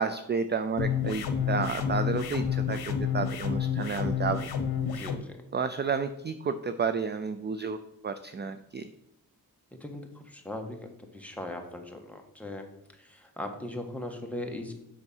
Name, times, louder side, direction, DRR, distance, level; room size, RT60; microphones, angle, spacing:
voice 1, 0.0-4.4 5.5-7.8 8.0-8.9, right 5 dB, 30° right, 11 dB, 0.4 m, -31 dB
sound 1, 0.8-5.2, left 7 dB, 75° left, 1.0 m, -29 dB
voice 2, 4.8-5.3 9.8-12.6 13.0-14.7, left 1 dB, 5° left, 2 dB, 1.4 m, -39 dB
8.1 x 5.7 x 5.5 m, 0.83 s
wide cardioid pair, 100°, 37 cm